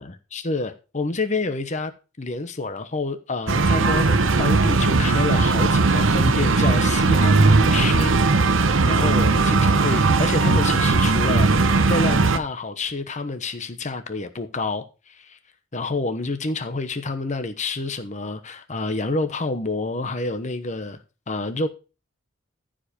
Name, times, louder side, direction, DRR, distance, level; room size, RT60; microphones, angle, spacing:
voice 1, 0.0-1.9 2.2-15.4 15.7-21.0 21.3-21.7, left 3 dB, 35° left, 1.0 m, -28 dB
sound 1, 3.5-12.4, right 3 dB, 65° right, 0.9 m, -18 dB
14.5 x 5.1 x 5.2 m
head